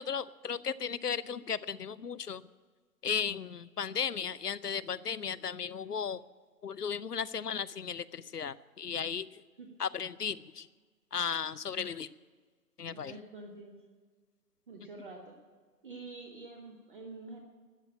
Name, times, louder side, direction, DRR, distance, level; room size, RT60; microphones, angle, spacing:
voice 1, 0.0-2.4 3.0-6.2 6.6-9.4 9.8-10.7 11.1-12.1 12.8-13.1, left 7 dB, 75° left, 17 dB, 0.7 m, -35 dB
voice 2, 12.9-13.8 14.7-15.4 15.8-17.4, right 3 dB, 30° right, 2 dB, 1.5 m, -47 dB
12.5 x 9.1 x 9.6 m, 1.5 s
figure-of-eight pair, 145°, 48 cm